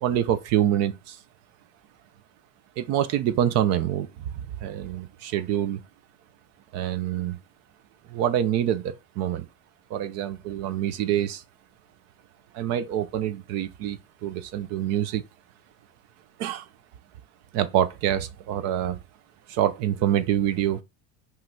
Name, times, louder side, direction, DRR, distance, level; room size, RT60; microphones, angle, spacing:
voice 1, 0.0-1.2 2.8-4.1 4.3-5.8 6.7-7.4 8.1-9.5 9.9-11.4 12.5-15.2 16.4-16.7 17.5-19.0 19.5-20.8, right 11 dB, 50° right, 0.8 m, -26 dB
5.7 x 3.3 x 5.8 m
cardioid pair, 155°, 34 cm